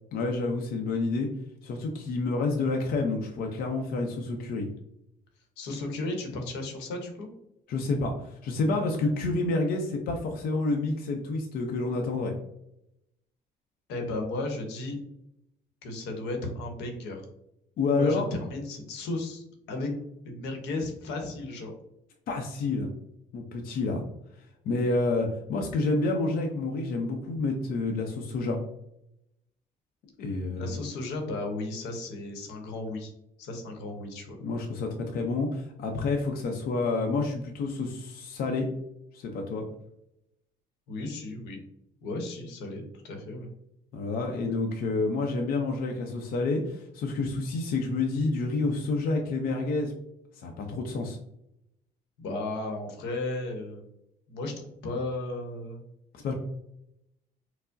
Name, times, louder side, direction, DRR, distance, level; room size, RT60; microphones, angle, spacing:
voice 1, 0.1-1.3 1.6-4.7 7.7-12.3 17.8-18.2 22.3-22.9 23.3-24.0 24.6-28.6 30.2-30.7 34.4-38.7 39.1-39.7 43.9-49.9 50.3-51.2 56.2-56.3, left 3 dB, 60° left, 2 dB, 0.5 m, -29 dB
voice 2, 5.6-7.3 13.9-15.0 15.8-17.2 17.9-19.9 20.2-21.7 30.5-33.1 33.4-34.4 40.9-41.6 42.0-43.5 52.2-53.8 54.3-54.5 54.8-55.8, left 2 dB, 90° left, 3 dB, 0.8 m, -34 dB
4.4 x 2.0 x 2.5 m, 0.79 s
cardioid pair, 110°, 17 cm